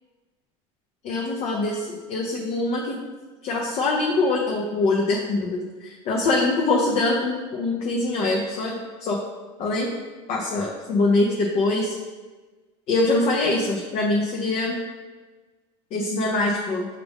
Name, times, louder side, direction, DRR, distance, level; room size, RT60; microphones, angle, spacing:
voice 1, 1.0-3.0 3.4-9.2 9.6-9.9 10.3-12.0 12.9-14.8 15.9-16.9, left 2 dB, 45° left, -1 dB, 0.6 m, -23 dB
5.9 x 2.5 x 3.5 m, 1.3 s
supercardioid pair, 135°, 15 cm